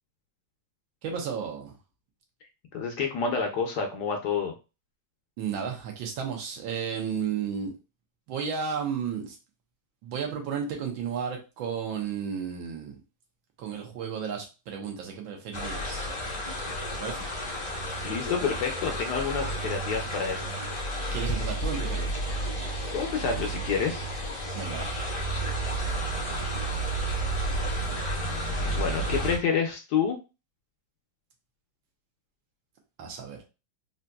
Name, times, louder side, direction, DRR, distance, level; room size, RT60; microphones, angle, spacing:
voice 1, 1.0-1.7 5.4-7.7 8.3-9.4 10.0-13.0 13.6-16.1 16.9-17.3 21.1-22.1 24.5-24.9 33.0-33.4, right 7 dB, 80° right, 2 dB, 1.6 m, -33 dB
voice 2, 2.7-4.5 18.0-20.6 22.9-24.1 28.6-30.2, left 6 dB, 70° left, 3 dB, 1.1 m, -28 dB
sound 1, 15.5-29.4, right 1 dB, 45° left, 0.3 m, -31 dB
4.0 x 2.6 x 2.2 m, 0.29 s
omnidirectional pair, 2.1 m